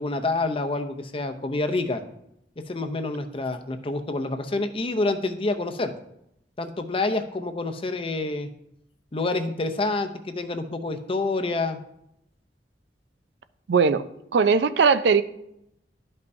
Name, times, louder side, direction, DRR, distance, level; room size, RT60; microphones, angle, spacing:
voice 1, 0.0-2.0 2.6-5.9 6.6-8.5 9.1-11.8, left 2 dB, 30° left, 7 dB, 0.6 m, -27 dB
voice 2, 13.7-14.0 14.3-15.2, right 5 dB, 70° right, 12 dB, 0.4 m, -19 dB
12.0 x 5.4 x 2.7 m, 0.78 s
head